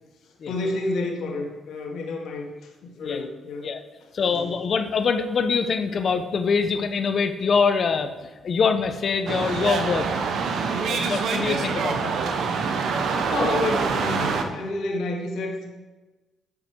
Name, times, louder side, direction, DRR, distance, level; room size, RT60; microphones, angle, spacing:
voice 1, 0.5-2.5 2.8-3.7 4.2-4.5 12.8-15.6, left 2 dB, 80° left, 0 dB, 2.1 m, -30 dB
voice 2, 4.1-8.1 8.4-10.1 10.8-12.1, left 5 dB, 50° left, 8 dB, 1.0 m, -24 dB
sound 1, 9.3-14.4, right 5 dB, 70° right, 1.1 m, -25 dB
12.0 x 6.0 x 4.7 m, 1.2 s
cardioid pair, 85°, 0 cm